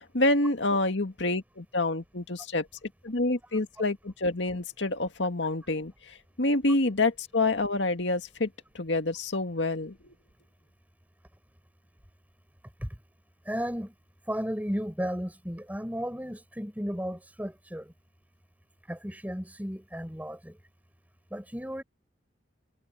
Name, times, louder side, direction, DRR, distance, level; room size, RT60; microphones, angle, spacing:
voice 1, 0.1-2.7 3.0-8.5 8.7-9.9, left 2 dB, 80° left, 2.0 m, -27 dB
voice 2, 13.5-13.9 14.3-17.9 18.9-20.6 21.3-21.8, equal, 10° right, 6.1 m, -34 dB
head